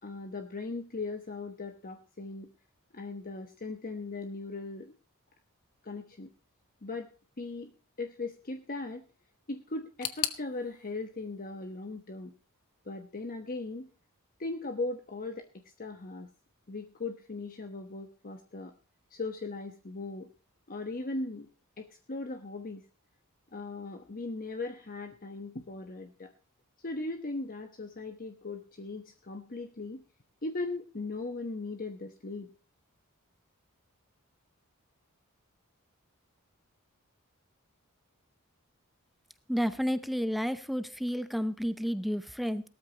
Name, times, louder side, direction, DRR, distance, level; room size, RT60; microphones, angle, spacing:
voice 1, 0.0-2.5 2.9-4.9 5.8-6.3 6.8-7.1 7.4-7.7 8.0-9.1 9.5-12.3 12.8-13.9 14.4-16.3 16.7-18.7 19.1-20.3 20.7-21.5 21.8-22.8 23.5-26.3 26.8-30.0 30.4-32.5, left 3 dB, 40° left, 6 dB, 1.1 m, -38 dB
sound 1, 10.0-12.9 13.1-14.0 14.2-14.3 15.2-15.3, left 12 dB, 70° left, 1.1 m, -40 dB
voice 2, 39.5-42.6, equal, ahead, 12 dB, 0.6 m, -31 dB
18.0 x 13.0 x 2.9 m, 0.35 s
head